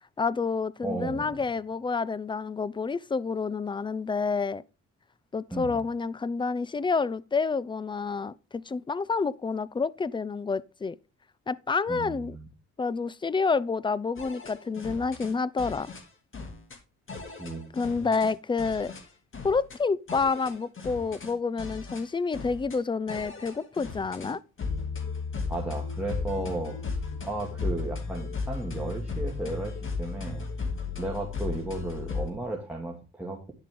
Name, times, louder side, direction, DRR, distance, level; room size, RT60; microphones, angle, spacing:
voice 1, 0.2-4.6 5.3-11.0 11.5-12.4 12.8-15.9 17.7-18.9 19.4-24.4, left 4 dB, 15° left, 0.4 m, -29 dB
voice 2, 0.8-1.3 5.5-5.8 11.9-12.5 17.3-17.7 25.5-30.5 31.0-33.5, right 2 dB, 5° right, 2.1 m, -34 dB
sound 1, 14.2-15.3 15.6-16.0 16.3-16.8 17.1-18.3 18.6-19.0 19.3-19.8 20.1-21.3 21.6-22.0 22.3-22.8 23.1-24.3 24.6-32.3, left 4 dB, 40° left, 2.6 m, -35 dB
10.0 x 6.7 x 3.7 m
cardioid pair, 90°, 30 cm